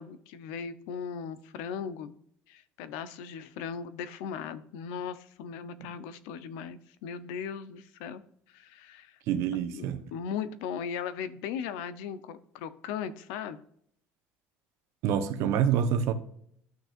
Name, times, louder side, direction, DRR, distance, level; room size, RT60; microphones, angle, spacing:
voice 1, 0.0-2.1 2.5-8.2 8.5-9.2 9.6-13.6, left 7 dB, 90° left, 0.8 m, -38 dB
voice 2, 9.3-10.0 15.0-16.1, right 8 dB, 70° right, 1.0 m, -26 dB
12.5 x 6.3 x 2.5 m
cardioid pair, 125°, 5 cm